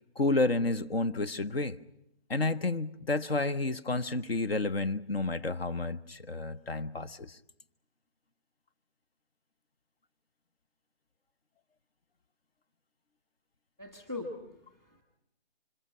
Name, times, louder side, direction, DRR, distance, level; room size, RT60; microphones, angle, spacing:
voice 1, 0.2-1.8 2.3-7.4, left 2 dB, 70° left, 1.2 m, -30 dB
voice 2, 13.8-15.0, left 2 dB, 5° left, 1.2 m, -41 dB
28.5 x 25.5 x 5.5 m
hypercardioid pair, 175°, 32 cm